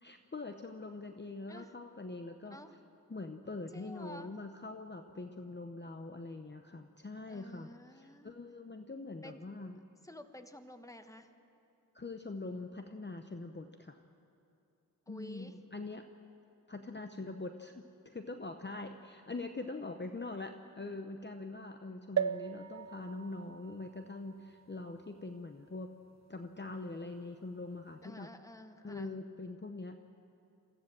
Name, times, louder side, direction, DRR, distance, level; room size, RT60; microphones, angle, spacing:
voice 1, 0.0-2.6 3.1-7.7 8.0-9.8 11.9-14.0 15.1-16.0 16.7-25.9 26.3-28.3 28.8-30.0, left 3 dB, 35° left, 6 dB, 0.8 m, -43 dB
voice 2, 3.7-4.4 7.3-8.3 9.2-9.4 10.0-11.3 15.1-15.6 28.0-29.1, left 1 dB, 10° left, 7 dB, 1.2 m, -51 dB
sound 1, 22.2-25.8 26.4-26.5 26.7-26.8, right 8 dB, 55° right, 0.5 m, -39 dB
24.5 x 15.0 x 7.6 m, 2.6 s
wide cardioid pair, 70°, 33 cm